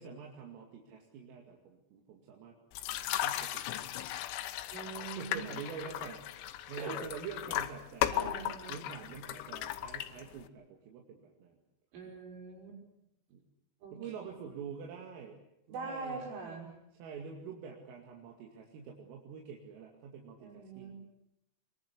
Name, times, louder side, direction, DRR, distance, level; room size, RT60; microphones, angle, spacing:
voice 1, 0.0-2.6 3.2-4.1 5.2-11.6 13.3-13.4 13.9-15.4 15.7-16.4 17.0-20.9, right 6 dB, 85° right, 0 dB, 5.0 m, -46 dB
sound 1, 2.7-10.5, left 13 dB, 90° left, 3.8 m, -37 dB
voice 2, 4.7-5.5 5.8-5.9 6.8-7.0 8.1-8.8 11.9-12.8 13.8-14.3 15.7-16.7 20.4-20.9, right 4 dB, 70° right, 0 dB, 7.9 m, -43 dB
25.5 x 22.0 x 8.4 m, 0.84 s
omnidirectional pair, 5.8 m